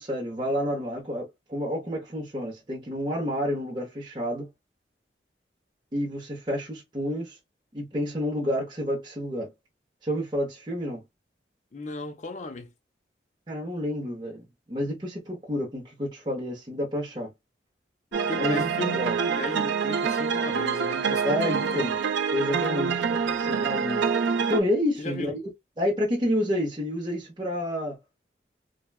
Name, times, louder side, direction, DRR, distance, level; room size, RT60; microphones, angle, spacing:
voice 1, 0.0-4.5 5.9-7.4 7.7-9.5 10.0-11.0 13.5-17.3 18.4-19.1 21.2-22.0 22.3-24.1 24.5-25.4 25.8-28.0, left 1 dB, 25° right, 0.8 m, -29 dB
voice 2, 11.7-12.7 18.3-21.9 25.0-25.3, left 2 dB, 40° left, 0.5 m, -36 dB
sound 1, 18.1-24.6, right 6 dB, 80° right, 0.4 m, -26 dB
3.2 x 2.2 x 2.3 m
head